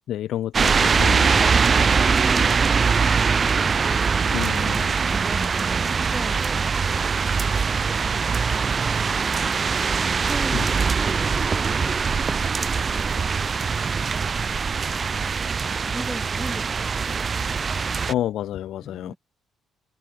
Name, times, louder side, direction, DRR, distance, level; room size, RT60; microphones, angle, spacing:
voice 1, 0.1-1.7 4.3-4.9 10.5-10.6 18.1-19.1, left 12 dB, 80° left, 1.7 m, -29 dB
sound 1, 0.5-18.1, right 5 dB, 40° right, 0.4 m, -22 dB
voice 2, 1.9-4.0 5.1-9.3 9.9-12.8 15.9-16.7 18.8-19.2, right 1 dB, 10° right, 7.1 m, -40 dB
cardioid pair, 90°, 0 cm